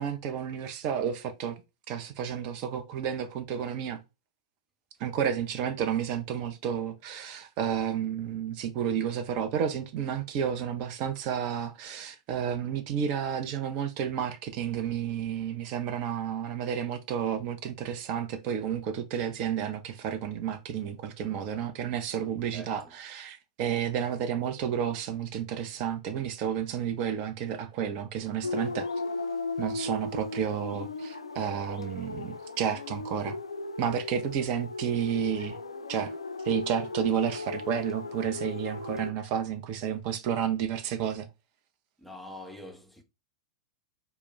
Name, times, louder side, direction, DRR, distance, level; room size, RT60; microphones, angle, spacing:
voice 1, 0.0-1.6 1.9-4.0 5.0-28.9 29.6-33.4 33.8-35.6 35.9-36.1 36.4-41.3, right 8 dB, 45° right, 0.5 m, -31 dB
sound 1, 28.4-39.1, left 3 dB, 85° left, 0.3 m, -37 dB
voice 2, 42.0-43.0, left 1 dB, 5° left, 0.5 m, -44 dB
2.3 x 2.0 x 3.7 m
figure-of-eight pair, 95°, 3 cm